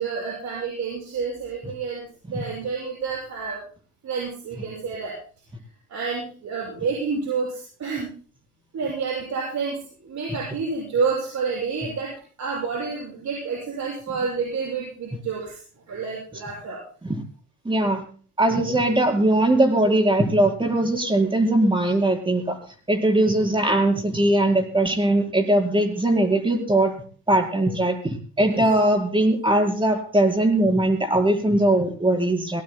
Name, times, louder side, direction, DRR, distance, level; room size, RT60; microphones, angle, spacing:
voice 1, 0.0-3.6 4.0-5.2 5.9-8.1 8.7-9.8 10.0-15.6 15.9-16.8 28.4-28.6, right 5 dB, 65° right, -2 dB, 6.8 m, -29 dB
voice 2, 17.6-18.0 18.4-22.6 22.9-26.9 27.3-32.6, right 1 dB, 15° right, 1 dB, 4.5 m, -20 dB
24.0 x 19.0 x 2.2 m, 0.42 s
cardioid pair, 90°, 30 cm